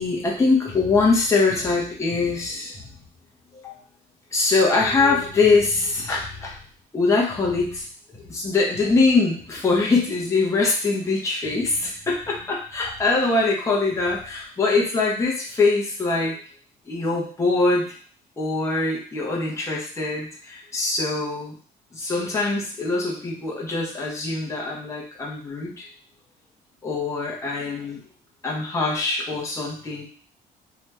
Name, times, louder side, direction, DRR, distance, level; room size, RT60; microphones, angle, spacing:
voice 1, 0.0-2.8 3.6-3.7 4.3-6.6 6.9-7.9 8.2-16.3 16.9-17.9 18.4-21.5 21.9-25.9 26.8-28.0 28.4-30.0, left 3 dB, 20° left, -4 dB, 0.9 m, -23 dB
3.0 x 2.8 x 2.3 m, 0.44 s
cardioid pair, 110°, 17 cm